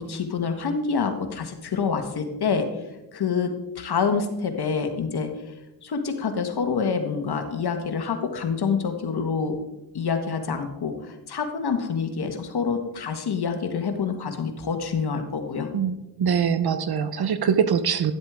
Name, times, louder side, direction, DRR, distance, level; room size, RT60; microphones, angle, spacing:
voice 1, 0.0-2.7 3.1-5.3 5.8-9.6 9.9-15.7, left 5 dB, 50° left, 6 dB, 1.5 m, -27 dB
voice 2, 15.7-18.1, right 7 dB, 50° right, 12 dB, 0.8 m, -23 dB
12.0 x 7.8 x 3.6 m, 0.97 s
supercardioid pair, 60°, 48 cm